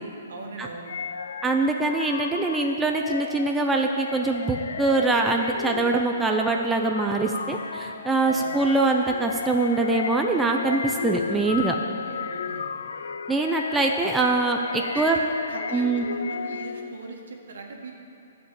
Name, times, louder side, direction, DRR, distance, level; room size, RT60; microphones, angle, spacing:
voice 1, 0.3-0.9 8.3-8.6 11.8-12.7 14.9-17.9, right 3 dB, 75° right, 1 dB, 1.7 m, -39 dB
sound 1, 0.9-17.1, left 6 dB, 85° left, 0.4 m, -34 dB
voice 2, 1.4-11.8 13.3-15.2 15.7-16.1, right 3 dB, 5° right, 1 dB, 0.5 m, -23 dB
11.5 x 5.2 x 8.3 m, 2.9 s
hypercardioid pair, 155°, 0 cm